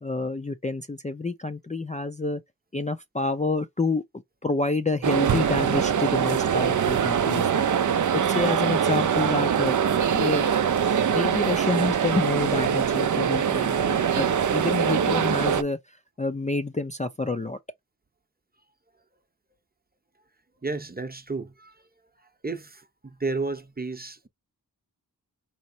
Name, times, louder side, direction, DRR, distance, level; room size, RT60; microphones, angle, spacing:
voice 1, 0.0-2.4 2.7-4.0 4.4-7.5 8.1-9.8 10.1-10.5 11.1-15.8 16.2-17.6, left 3 dB, 20° left, 0.5 m, -28 dB
sound 1, 5.0-15.6, right 8 dB, 50° right, 0.5 m, -23 dB
voice 2, 20.6-21.8 22.4-24.3, right 3 dB, 25° right, 0.8 m, -32 dB
4.3 x 3.0 x 2.7 m
cardioid pair, 45°, 38 cm